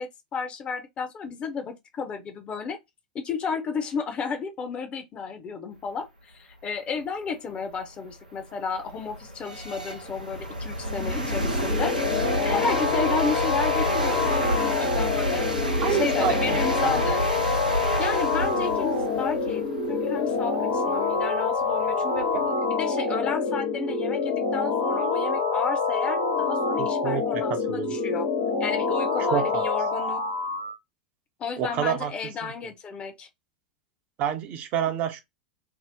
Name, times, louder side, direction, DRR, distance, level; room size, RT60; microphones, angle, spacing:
voice 1, 0.0-2.8 3.1-12.0 12.4-17.2 18.0-22.3 22.7-28.3 28.6-30.2 31.4-33.3, left 5 dB, 25° left, 0.7 m, -32 dB
sound 1, 7.0-7.1 7.7-22.5, equal, 85° right, 0.8 m, -30 dB
sound 2, 10.8-30.7, left 4 dB, 65° left, 1.3 m, -26 dB
voice 2, 15.8-17.2 22.3-22.4 26.8-27.9 29.2-29.6 31.6-32.1 32.4-32.5 34.2-35.2, right 9 dB, 40° right, 0.6 m, -29 dB
2.7 x 2.0 x 3.5 m
figure-of-eight pair, 90°, 4 cm